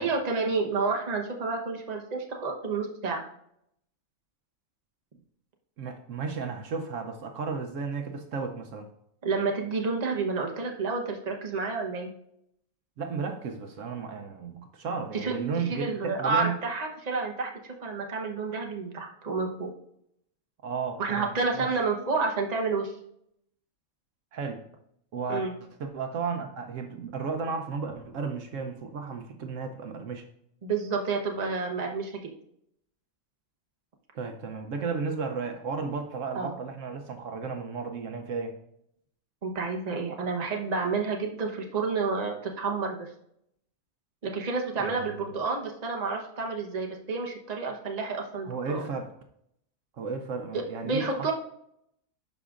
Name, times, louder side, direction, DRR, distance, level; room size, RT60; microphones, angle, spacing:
voice 1, 0.0-3.2 9.2-12.1 15.1-15.3 15.6-19.7 21.0-22.9 25.3-25.5 30.6-32.2 36.3-36.5 39.4-43.1 44.2-48.8 50.5-51.3, right 4 dB, 35° right, 1 dB, 0.9 m, -30 dB
voice 2, 5.8-8.9 13.0-16.6 20.6-21.7 24.3-24.6 25.1-25.5 25.8-30.3 34.1-38.5 44.8-45.1 48.4-49.1 50.0-51.3, right 5 dB, 70° right, 5 dB, 1.0 m, -34 dB
12.0 x 4.9 x 2.5 m, 0.74 s
omnidirectional pair, 1.4 m